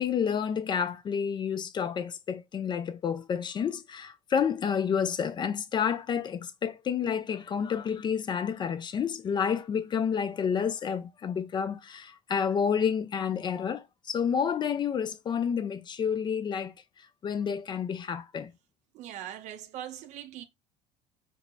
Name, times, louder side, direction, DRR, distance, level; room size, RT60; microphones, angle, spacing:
voice 1, 0.0-16.7 17.2-18.5, left 7 dB, 35° left, 0.4 m, -29 dB
voice 2, 18.9-20.4, right 11 dB, 60° right, 0.5 m, -41 dB
4.5 x 2.0 x 2.4 m
supercardioid pair, 90°, 14 cm